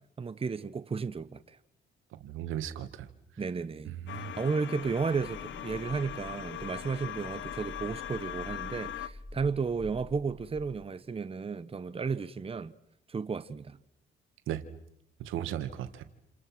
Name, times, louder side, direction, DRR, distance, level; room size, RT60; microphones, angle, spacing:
voice 1, 0.2-1.6 3.4-3.9 4.4-12.7 13.1-13.8, right 5 dB, 30° right, 1.2 m, -33 dB
voice 2, 2.2-3.1 3.9-4.3 14.5-14.6 15.2-16.0, right 11 dB, 90° right, 2.0 m, -36 dB
sound 1, 4.1-9.1, left 11 dB, 70° left, 1.3 m, -40 dB
sound 2, 5.0-10.7, equal, 10° right, 4.5 m, -48 dB
29.5 x 28.5 x 6.2 m
cardioid pair, 90°, 20 cm